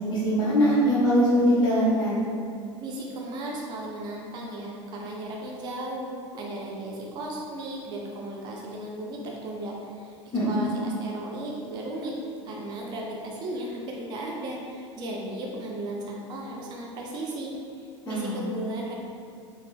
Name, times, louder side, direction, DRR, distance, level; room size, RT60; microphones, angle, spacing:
voice 1, 0.1-2.2 10.3-10.7 18.1-18.4, equal, 25° left, -10 dB, 0.7 m, -22 dB
voice 2, 2.8-10.2 10.5-12.1 12.4-19.0, right 1 dB, 30° right, -2 dB, 0.4 m, -35 dB
3.6 x 2.0 x 2.2 m, 2.4 s
figure-of-eight pair, 75°, 16 cm